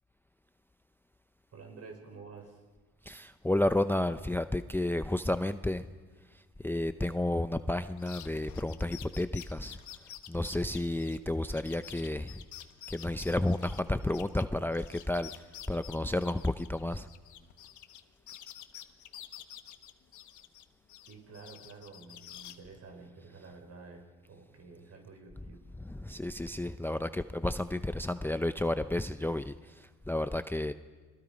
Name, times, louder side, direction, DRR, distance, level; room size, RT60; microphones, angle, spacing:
voice 1, 1.5-2.6 21.1-25.6, right 4 dB, 55° right, 4 dB, 5.2 m, -50 dB
voice 2, 3.0-5.9 6.6-9.8 10.3-12.4 12.9-17.1 25.8-30.7, left 1 dB, 5° left, 11 dB, 0.6 m, -31 dB
sound 1, 8.0-14.4 14.7-18.0 18.3-20.6 20.9-22.6, left 11 dB, 75° left, 1.3 m, -49 dB
30.0 x 22.5 x 5.2 m, 1.4 s
cardioid pair, 90°, 30 cm